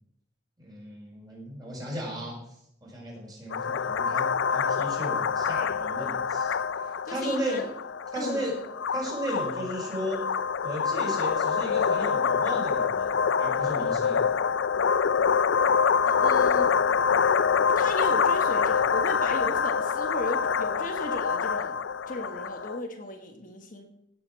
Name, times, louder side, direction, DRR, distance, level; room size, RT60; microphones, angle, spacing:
voice 1, 0.6-2.4 2.8-6.6 6.8-7.6 8.1-8.6 8.9-10.2 10.6-14.2, equal, 20° right, -3 dB, 5.4 m, -35 dB
sound 1, 3.5-22.8, left 6 dB, 80° left, 0.5 m, -26 dB
voice 2, 7.1-7.7 8.1-8.4 16.0-16.7 17.7-21.7 22.1-23.9, left 1 dB, 45° left, 3 dB, 1.4 m, -35 dB
16.0 x 7.0 x 6.3 m, 0.78 s
head